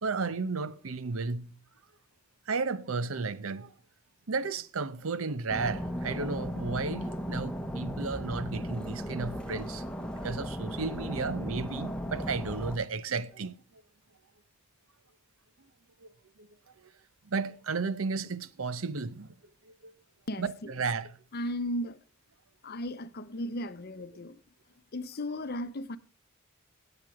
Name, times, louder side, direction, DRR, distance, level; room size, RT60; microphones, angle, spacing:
voice 1, 0.0-1.5 2.5-3.7 4.3-9.8 10.2-13.8 16.0-16.1 16.4-16.5 16.8-16.9 17.2-19.3 19.6-19.9 20.4-21.1, right 4 dB, 85° right, 0.7 m, -33 dB
Storm noise, 5.5-12.8, equal, 5° left, 1.0 m, -36 dB
voice 2, 20.3-20.7 21.3-22.0 22.6-24.4 24.9-26.0, left 1 dB, 50° left, 0.7 m, -35 dB
17.0 x 8.1 x 4.8 m
head